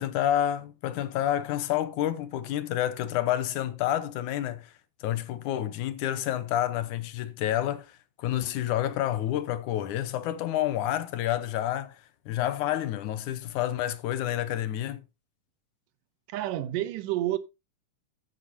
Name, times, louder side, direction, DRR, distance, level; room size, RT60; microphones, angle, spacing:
voice 1, 0.0-4.7 5.0-12.0 12.3-15.0, left 12 dB, 75° left, 2.3 m, -29 dB
voice 2, 16.3-17.4, right 14 dB, 85° right, 2.4 m, -29 dB
13.5 x 8.9 x 2.7 m
omnidirectional pair, 3.6 m